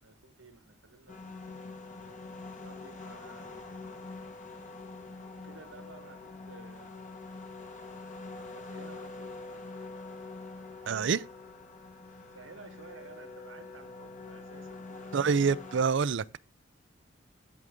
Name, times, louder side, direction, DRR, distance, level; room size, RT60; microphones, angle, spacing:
voice 1, 0.0-2.2 2.6-3.6 5.4-6.9 8.4-9.9 12.3-15.6, right 3 dB, 80° right, 1.5 m, -53 dB
sound 1, 1.1-15.8, left 3 dB, 40° left, 1.6 m, -45 dB
voice 2, 10.9-11.2 15.1-16.4, right 5 dB, 65° right, 0.5 m, -27 dB
14.5 x 6.5 x 3.7 m
head